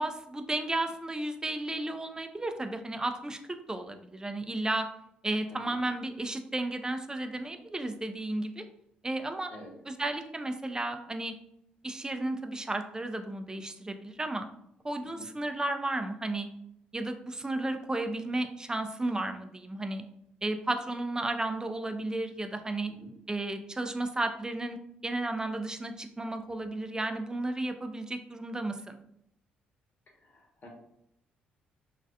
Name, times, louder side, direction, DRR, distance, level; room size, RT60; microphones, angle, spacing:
voice 1, 0.0-3.4 3.7-4.9 5.2-8.6 9.0-9.5 9.9-11.3 11.8-14.5 14.8-16.5 16.9-20.0 20.4-22.9 23.3-24.8 25.0-29.0, right 2 dB, 15° right, 7 dB, 0.4 m, -33 dB
voice 2, 30.1-30.7, equal, 40° left, 0 dB, 1.0 m, -49 dB
3.1 x 2.4 x 2.6 m, 0.76 s
figure-of-eight pair, 45°, 5 cm